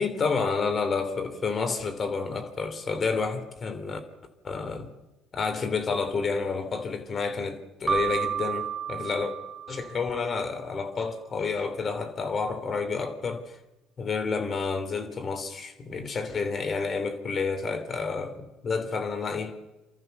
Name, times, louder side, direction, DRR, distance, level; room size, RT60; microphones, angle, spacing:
voice 1, 0.0-4.0 4.4-4.9 5.3-9.3 9.7-13.6 14.0-19.6, left 4 dB, 40° left, 3.5 m, -30 dB
Keyboard (musical), 7.9-10.4, right 7 dB, 15° right, 1.1 m, -31 dB
29.0 x 13.5 x 7.0 m
hypercardioid pair, 60°, 0 cm